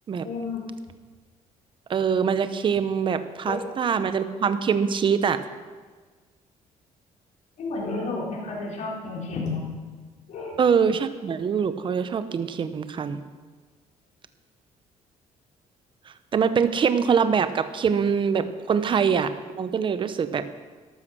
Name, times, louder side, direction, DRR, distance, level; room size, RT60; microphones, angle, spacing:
voice 1, 0.2-0.6 3.5-3.8 7.6-9.6 10.3-10.6, left 3 dB, 60° left, -3 dB, 3.9 m, -31 dB
voice 2, 1.9-5.4 10.6-13.2 16.3-20.5, right 6 dB, 40° right, 11 dB, 0.9 m, -24 dB
13.0 x 12.5 x 6.2 m, 1.4 s
cardioid pair, 120°, 14 cm